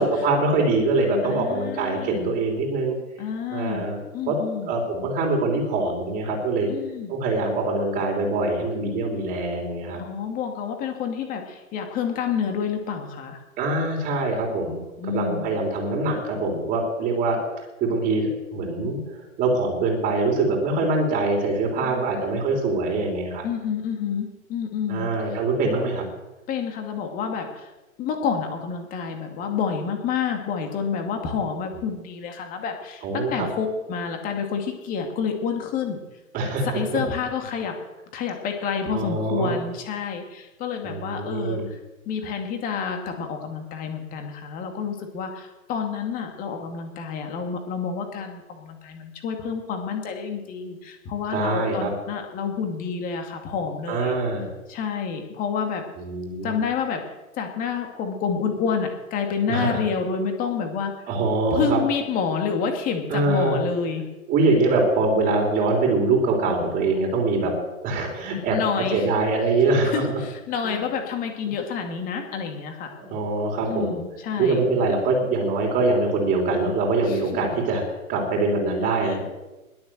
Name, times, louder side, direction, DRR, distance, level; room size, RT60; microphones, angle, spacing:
voice 1, 0.2-3.0 3.5-4.0 4.3-4.4 4.7-6.7 7.1-10.0 13.6-14.8 15.1-17.4 17.8-23.5 24.9-26.0 33.0-33.5 36.3-37.0 38.9-39.5 40.8-41.7 51.3-51.9 53.9-54.5 56.0-56.6 59.5-59.9 61.1-61.8 63.1-63.6 64.3-67.5 67.8-68.6 68.9-70.0 70.6-70.8 72.9-74.0 74.4-79.2, right 3 dB, 20° right, 1 dB, 3.4 m, -23 dB
voice 2, 1.2-2.3 3.2-3.9 4.1-4.7 6.7-7.2 10.0-13.4 15.0-15.6 21.8-22.1 22.5-22.6 23.4-25.1 26.5-27.7 28.0-36.0 36.7-37.7 38.1-41.8 42.1-54.2 54.7-55.9 56.4-57.0 57.3-60.9 61.5-64.0 68.5-69.1 69.8-73.0 73.7-74.7 77.1-77.2 79.0-79.2, left 6 dB, 20° left, 4 dB, 2.3 m, -29 dB
20.5 x 7.3 x 7.7 m, 1.1 s
figure-of-eight pair, 125°, 43 cm